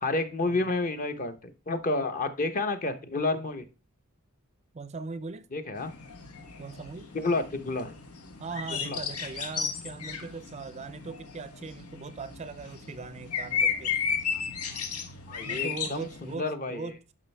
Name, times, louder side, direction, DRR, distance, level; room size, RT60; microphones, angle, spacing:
voice 1, 0.0-3.7 5.5-5.9 7.1-7.9 8.8-9.0 14.7-14.8 15.3-16.9, left 2 dB, 40° left, 0.9 m, -30 dB
voice 2, 4.7-5.5 6.6-7.1 8.4-13.9 15.5-17.1, right 4 dB, 30° right, 0.4 m, -40 dB
sound 1, 5.8-16.4, left 6 dB, 80° left, 1.2 m, -34 dB
11.0 x 5.5 x 3.3 m
head